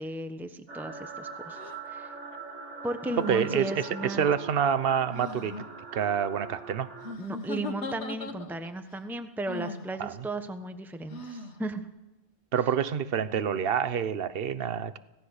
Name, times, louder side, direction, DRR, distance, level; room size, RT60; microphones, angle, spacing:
voice 1, 0.0-1.6 1.9-2.1 2.8-4.3 7.2-11.8, right 1 dB, ahead, 8 dB, 1.0 m, -35 dB
sound 1, 0.7-7.1, right 4 dB, 90° right, 2.5 m, -42 dB
sound 2, 1.5-1.8 3.1-4.0 5.1-5.6 7.0-8.7 9.5-9.9 11.1-11.6, left 2 dB, 75° left, 1.7 m, -39 dB
voice 2, 3.3-5.5 5.9-6.9 10.0-10.1 12.5-15.0, right 8 dB, 55° right, 13 dB, 1.1 m, -27 dB
25.0 x 17.5 x 6.5 m, 1.0 s
omnidirectional pair, 1.2 m